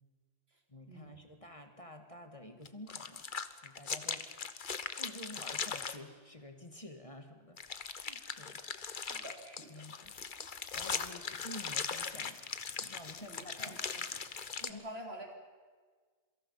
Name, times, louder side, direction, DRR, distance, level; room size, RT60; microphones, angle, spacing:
voice 1, 0.7-3.3 3.6-4.2 5.0-8.6 9.7-10.1 10.7-12.4 12.8-13.8 14.7-14.9, left 1 dB, 30° left, 5 dB, 2.0 m, -50 dB
sound 1, 2.6-6.0 7.6-14.7, left 6 dB, 50° left, 1.1 m, -39 dB
voice 2, 9.0-9.8 10.4-10.5 13.2-13.8 14.6-15.4, right 1 dB, 70° right, 2 dB, 3.7 m, -48 dB
27.5 x 24.0 x 5.7 m, 1.5 s
omnidirectional pair, 1.1 m